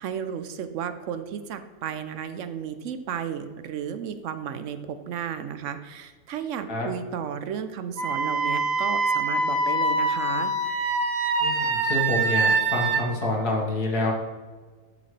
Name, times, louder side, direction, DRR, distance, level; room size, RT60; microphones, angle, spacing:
voice 1, 0.0-10.5, right 8 dB, 65° right, 10 dB, 0.8 m, -33 dB
Wind instrument woodwind instrument, 8.0-13.0, right 3 dB, 45° right, 1.1 m, -24 dB
voice 2, 11.4-14.1, left 2 dB, 80° left, -1 dB, 2.2 m, -27 dB
11.5 x 6.6 x 3.3 m, 1.4 s
omnidirectional pair, 1.7 m